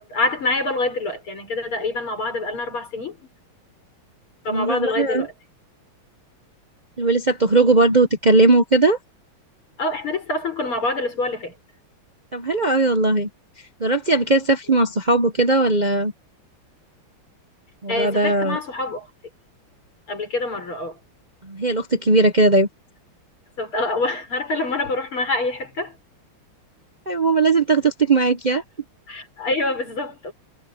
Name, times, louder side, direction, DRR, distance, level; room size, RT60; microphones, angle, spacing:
voice 1, 0.0-3.2 4.4-5.3 9.8-11.6 17.9-19.1 20.1-21.0 23.6-26.0 29.1-30.3, left 2 dB, 80° left, 7.2 m, -26 dB
voice 2, 4.5-5.3 7.0-9.0 12.3-13.3 13.8-16.1 17.8-18.6 21.4-22.7 27.1-28.6, right 2 dB, 40° right, 0.6 m, -18 dB
omnidirectional pair, 2.3 m